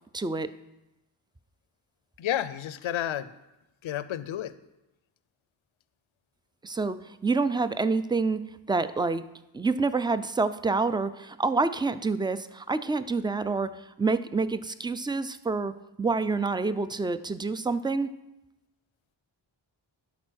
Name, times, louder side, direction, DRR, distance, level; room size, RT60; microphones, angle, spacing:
voice 1, 0.1-0.5 6.6-8.4 8.7-9.2 9.5-15.7 16.0-18.1, right 3 dB, 10° right, 13 dB, 0.4 m, -27 dB
voice 2, 2.2-3.3 3.8-4.5, left 11 dB, 80° left, 14 dB, 0.6 m, -31 dB
11.5 x 4.2 x 6.3 m, 0.96 s
cardioid pair, 50°, 47 cm